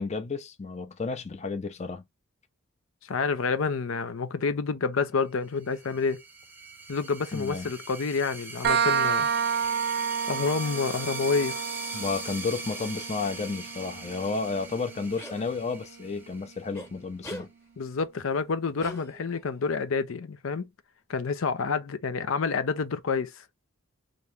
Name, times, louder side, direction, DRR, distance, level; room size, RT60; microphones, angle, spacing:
voice 1, 0.0-2.1 7.3-7.7 11.9-17.5, left 4 dB, 35° left, 0.5 m, -32 dB
voice 2, 3.1-6.2 6.9-9.3 10.3-11.6 17.8-20.7 21.1-23.4, left 4 dB, 85° left, 0.6 m, -28 dB
sound 1, 5.6-16.9, right 2 dB, 10° right, 0.7 m, -41 dB
sound 2, 8.6-16.1, right 7 dB, 50° right, 0.4 m, -31 dB
sound 3, 15.2-15.4 16.7-16.9 17.2-17.5 18.8-19.5, left 1 dB, 15° left, 1.0 m, -41 dB
3.0 x 2.6 x 3.1 m
head